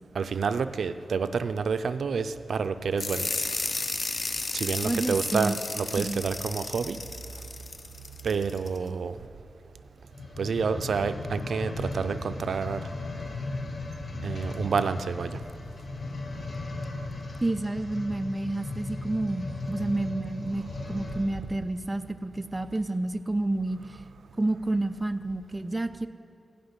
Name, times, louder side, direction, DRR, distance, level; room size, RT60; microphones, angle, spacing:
voice 1, 0.1-3.3 3.6-3.7 4.5-7.0 8.2-9.2 10.4-12.9 14.2-15.4, right 5 dB, 85° right, 11 dB, 0.4 m, -29 dB
sound 1, 3.0-8.8, left 3 dB, 40° left, 0.6 m, -33 dB
voice 2, 4.8-5.5 6.0-6.2 17.4-20.6 20.9-23.8 24.4-26.1, right 2 dB, 20° right, 9 dB, 0.5 m, -29 dB
sound 2, 10.0-21.4 22.0-22.1, left 2 dB, 55° left, 1.1 m, -37 dB
15.5 x 5.7 x 9.7 m, 2.8 s
wide cardioid pair, 115°, 0 cm